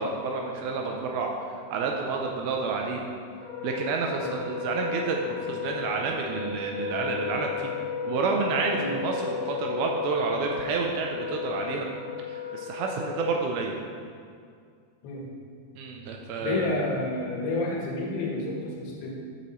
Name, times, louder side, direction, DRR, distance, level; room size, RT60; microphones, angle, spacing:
voice 1, 0.0-1.3 1.7-3.0 3.6-7.7 8.0-11.9 12.3-13.8 15.8-16.7, right 4 dB, 80° right, 1 dB, 2.3 m, -29 dB
Wind instrument woodwind instrument, 3.3-13.4, left 6 dB, 50° right, 2.5 m, -34 dB
voice 2, 16.4-19.1, left 2 dB, 80° left, -3 dB, 3.3 m, -30 dB
9.0 x 7.9 x 3.1 m, 2.2 s
omnidirectional pair, 4.7 m